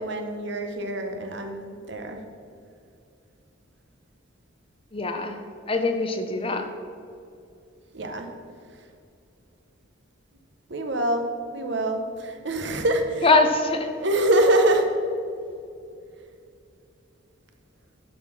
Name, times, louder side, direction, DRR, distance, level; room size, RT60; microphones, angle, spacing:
voice 1, 0.0-2.2 7.9-8.3 10.7-11.2 11.5-13.2 14.0-14.9, right 1 dB, 60° right, 5 dB, 0.9 m, -24 dB
voice 2, 4.9-5.4 5.7-6.7 13.2-13.9, left 3 dB, 25° left, 6 dB, 0.6 m, -22 dB
11.0 x 4.2 x 6.2 m, 2.5 s
head